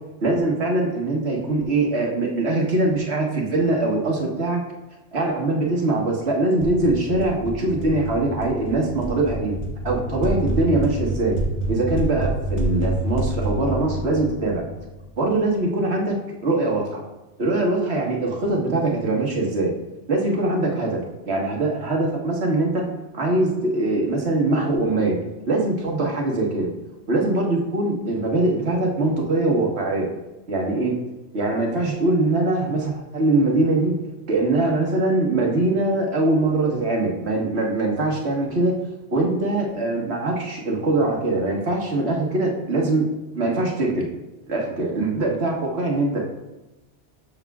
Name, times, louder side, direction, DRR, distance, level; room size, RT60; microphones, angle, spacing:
voice 1, 0.2-4.6 5.1-9.5 9.8-11.4 11.7-14.6 15.2-17.0 17.4-19.7 20.1-21.0 21.3-22.8 23.1-25.2 25.5-26.7 27.1-30.1 30.5-31.0 31.3-33.9 34.3-38.7 39.1-43.1 43.3-44.1 44.5-46.2, right 2 dB, 65° right, -1 dB, 1.7 m, -22 dB
sound 1, 6.6-15.3, right 1 dB, 75° left, 1.8 m, -28 dB
12.5 x 6.6 x 2.4 m, 1.0 s
omnidirectional pair, 1.2 m